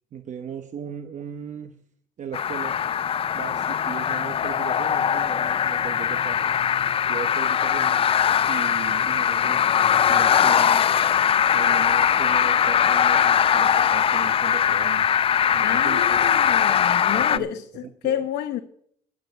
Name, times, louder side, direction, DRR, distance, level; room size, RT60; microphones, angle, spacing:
voice 1, 0.1-1.8 2.2-2.8 3.3-6.4 7.1-8.1 8.5-10.9 11.5-15.1 15.5-16.3 17.1-18.2, right 8 dB, 45° right, 0.9 m, -37 dB
sound 1, 2.3-17.4, left 8 dB, 35° left, 0.4 m, -21 dB
voice 2, 15.6-18.6, left 11 dB, 80° left, 1.0 m, -29 dB
11.5 x 7.7 x 7.9 m
cardioid pair, 110°, 17 cm